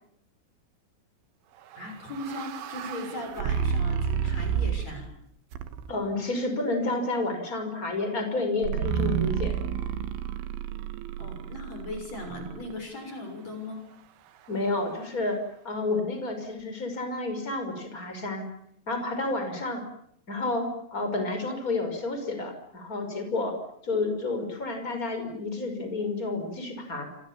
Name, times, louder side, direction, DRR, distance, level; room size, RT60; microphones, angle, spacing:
voice 1, 1.7-5.1 11.2-13.8, left 1 dB, 35° left, 4 dB, 7.4 m, -38 dB
sound 1, 1.7-5.1 5.5-6.1 8.6-12.7, right 8 dB, 75° right, 4.0 m, -30 dB
voice 2, 5.9-9.5 14.5-15.4 15.6-18.4 18.9-19.8 20.3-23.5 23.8-27.1, left 2 dB, 15° left, 6 dB, 5.6 m, -30 dB
28.0 x 27.5 x 7.3 m, 0.70 s
omnidirectional pair, 5.7 m